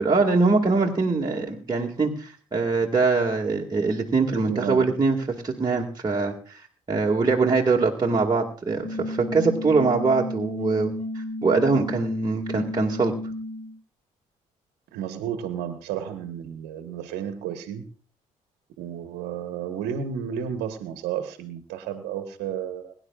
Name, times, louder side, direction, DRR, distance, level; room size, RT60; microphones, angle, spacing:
voice 1, 0.0-13.1, right 4 dB, 25° right, -1 dB, 2.0 m, -23 dB
voice 2, 4.3-4.9 14.9-17.8 18.8-22.9, right 8 dB, 75° right, 7 dB, 1.3 m, -32 dB
sound 1, 8.8-13.8, left 1 dB, 35° left, 6.4 m, -32 dB
22.0 x 11.0 x 2.4 m, 0.41 s
hypercardioid pair, 55°, 17 cm